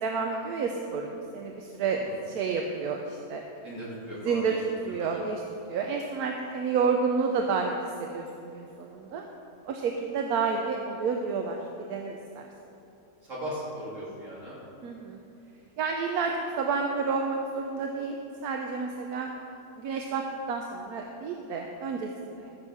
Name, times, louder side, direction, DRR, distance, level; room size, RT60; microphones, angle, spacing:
voice 1, 0.0-3.4 4.2-4.6 4.8-5.4 5.7-7.7 8.0-9.3 9.6-11.6 11.9-12.5 14.8-15.2 15.8-18.2 18.4-19.3 19.8-20.2 20.5-22.5, right 5 dB, 85° right, 2 dB, 1.2 m, -30 dB
voice 2, 3.6-4.6 4.9-5.1 13.3-14.6, equal, 55° right, -7 dB, 3.6 m, -38 dB
14.5 x 6.3 x 5.6 m, 2.8 s
omnidirectional pair, 1.6 m